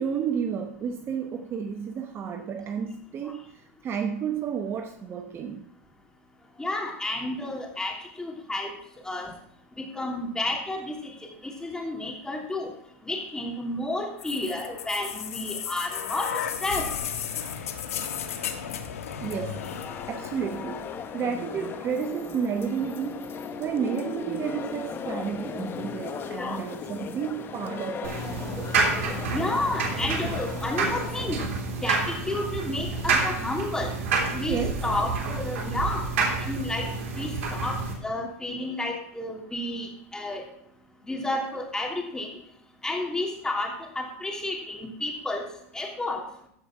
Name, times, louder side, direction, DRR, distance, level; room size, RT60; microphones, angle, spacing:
voice 1, 0.0-5.6 19.2-19.7 20.1-23.2 23.6-28.8 34.5-34.8, right 7 dB, 30° right, 0.8 m, -31 dB
voice 2, 6.6-8.7 9.0-9.3 9.9-11.1 11.4-12.7 13.0-16.9 26.3-26.6 29.3-31.4 31.8-33.9 34.3-36.0 36.4-36.9 37.1-40.4 41.1-42.3 42.8-45.4 45.7-46.2, left 2 dB, 10° left, 2.9 m, -31 dB
sound 1, 14.2-22.1 23.1-23.2, left 8 dB, 85° left, 1.2 m, -35 dB
sound 2, 19.2-31.5, left 6 dB, 30° left, 1.1 m, -37 dB
sound 3, 28.0-37.9, right 4 dB, 75° right, 3.2 m, -29 dB
14.5 x 5.1 x 5.9 m
hypercardioid pair, 115°, 8 cm